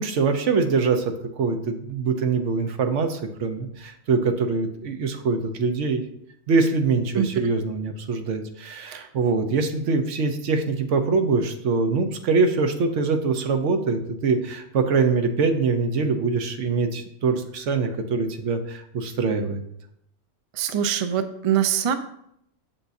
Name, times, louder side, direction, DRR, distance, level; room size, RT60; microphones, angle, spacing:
voice 1, 0.0-6.0 6.5-19.6, right 4 dB, 90° right, 6 dB, 1.1 m, -23 dB
voice 2, 20.6-21.9, right 9 dB, 50° right, 9 dB, 0.4 m, -23 dB
7.1 x 6.8 x 2.6 m, 0.74 s
omnidirectional pair, 1.2 m